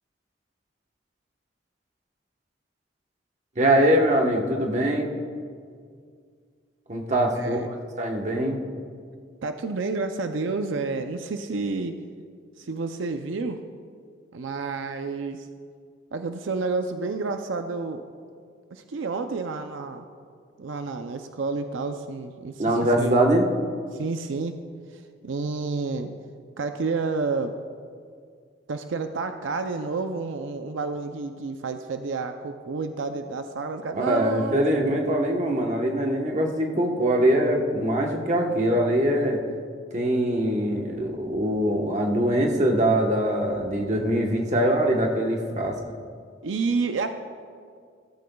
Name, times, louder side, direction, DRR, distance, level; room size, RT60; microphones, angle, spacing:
voice 1, 3.6-5.1 6.9-7.6 8.0-8.6 22.6-23.5 33.9-39.4 39.9-45.8, right 1 dB, 40° right, 1 dB, 1.1 m, -23 dB
voice 2, 7.4-7.7 9.4-12.0 12.6-13.6 14.3-15.5 16.1-18.0 18.7-20.0 20.6-22.6 23.0-23.2 23.9-24.6 25.2-26.1 26.6-27.5 28.7-34.9 46.4-47.1, right 4 dB, 85° right, 7 dB, 0.5 m, -30 dB
15.5 x 13.5 x 2.3 m, 2.1 s
head